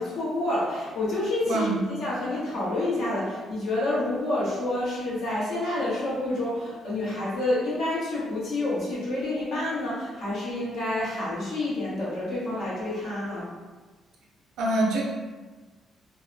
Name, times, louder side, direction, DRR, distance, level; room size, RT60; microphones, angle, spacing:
voice 1, 0.0-13.5, left 1 dB, 75° left, -8 dB, 1.2 m, -28 dB
voice 2, 1.4-1.8 14.6-15.0, right 2 dB, 85° right, -3 dB, 0.6 m, -24 dB
2.7 x 2.2 x 2.5 m, 1.3 s
cardioid pair, 90°, 0 cm